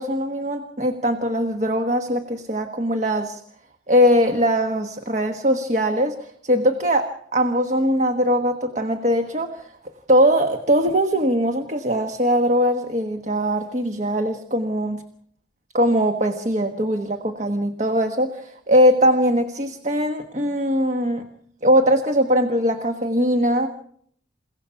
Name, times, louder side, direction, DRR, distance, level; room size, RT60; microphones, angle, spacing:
voice 1, 0.0-3.4 3.9-9.7 10.1-15.0 15.7-21.2 21.6-23.7, equal, 40° right, 6 dB, 1.3 m, -21 dB
28.5 x 17.0 x 5.7 m, 0.67 s
head